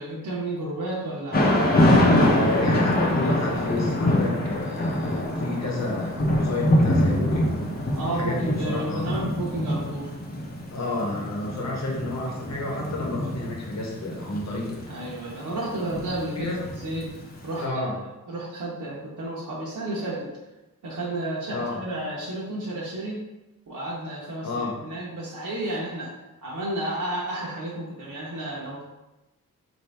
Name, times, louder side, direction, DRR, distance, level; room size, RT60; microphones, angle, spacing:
voice 1, 0.0-2.4 3.2-3.3 8.0-10.1 14.9-17.1 17.4-17.9 18.3-20.3 20.8-23.2 23.7-26.1 26.4-28.8, right 1 dB, 65° right, -5 dB, 0.9 m, -32 dB
Thunder / Rain, 1.3-17.3, left 1 dB, 30° left, 0.7 m, -24 dB
voice 2, 2.2-7.7 8.0-9.2 10.7-14.9 16.4-16.6 17.6-18.0 21.5-21.8 24.4-24.8, left 2 dB, 55° left, -1 dB, 0.9 m, -30 dB
4.3 x 2.6 x 3.3 m, 1.0 s
wide cardioid pair, 120°, 33 cm